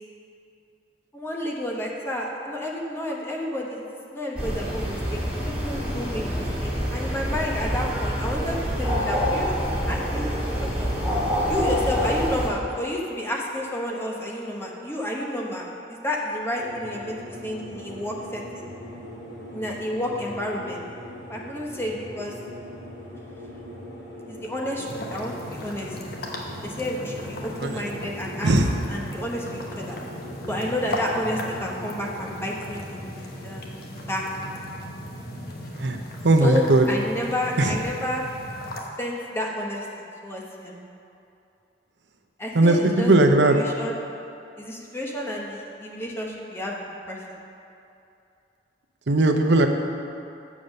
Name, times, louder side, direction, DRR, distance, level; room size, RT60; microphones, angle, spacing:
voice 1, 1.1-3.8 4.1-5.2 5.6-9.5 9.9-10.3 10.8-10.9 11.5-18.7 19.5-20.8 21.3-22.3 24.3-25.9 26.6-28.5 28.9-30.0 30.5-33.1 33.4-33.7 34.1-34.3 36.4-38.2 39.0-39.9 40.2-40.8 42.4-43.1 43.5-43.9 44.6-46.7 47.1-47.4, left 1 dB, 15° left, -2 dB, 1.1 m, -30 dB
sound 1, 4.4-12.5, equal, 5° right, 2.4 m, -26 dB
sound 2, 16.6-36.1, left 1 dB, 85° left, 2.1 m, -42 dB
sound 3, 24.8-38.8, equal, 60° left, 1.1 m, -37 dB
voice 2, 35.8-36.9 37.6-37.8 42.5-43.6 49.1-49.7, right 2 dB, 85° right, 5 dB, 0.8 m, -18 dB
7.3 x 6.9 x 6.5 m, 2.7 s
head